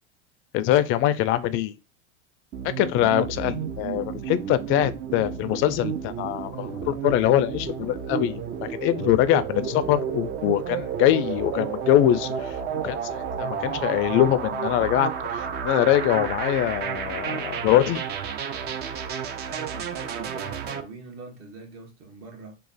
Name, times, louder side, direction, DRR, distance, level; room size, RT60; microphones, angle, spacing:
voice 1, 0.5-1.7 2.6-18.0, left 12 dB, 40° left, 0.4 m, -23 dB
sound 1, 2.5-20.8, right 7 dB, 30° right, 0.4 m, -31 dB
voice 2, 19.5-22.6, right 3 dB, 50° right, 1.4 m, -42 dB
3.1 x 2.3 x 4.0 m
supercardioid pair, 120°, 33 cm